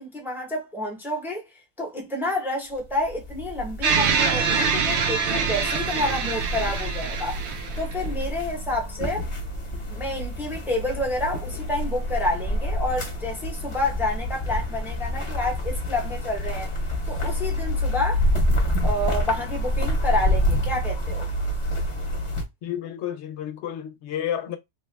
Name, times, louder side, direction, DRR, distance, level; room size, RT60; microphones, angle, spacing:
voice 1, 0.0-1.4 1.8-7.4 7.8-9.3 9.9-16.7 17.1-18.2 18.8-21.3, left 1 dB, ahead, 0.7 m, -29 dB
sound 1, 2.8-22.4, left 1 dB, 30° left, 0.9 m, -28 dB
sound 2, 3.8-8.2, right 5 dB, 75° right, 0.9 m, -25 dB
voice 2, 22.6-24.6, left 10 dB, 80° left, 0.9 m, -31 dB
3.0 x 2.3 x 3.2 m
omnidirectional pair, 1.2 m